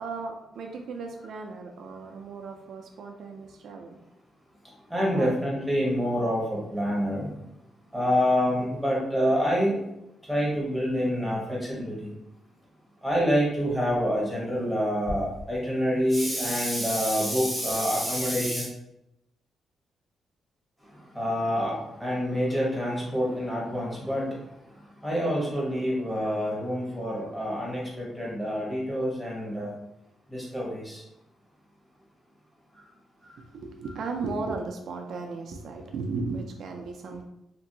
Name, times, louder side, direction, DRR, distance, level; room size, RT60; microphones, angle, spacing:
voice 1, 0.0-4.0 5.2-5.4 33.4-37.2, right 4 dB, 65° right, 3 dB, 0.3 m, -35 dB
voice 2, 4.9-7.3 7.9-9.8 10.3-12.1 13.0-18.7 21.1-24.3 25.0-29.7 30.3-31.0, equal, ahead, -4 dB, 1.0 m, -27 dB
2.9 x 2.6 x 2.7 m, 0.84 s
cardioid pair, 130°, 0 cm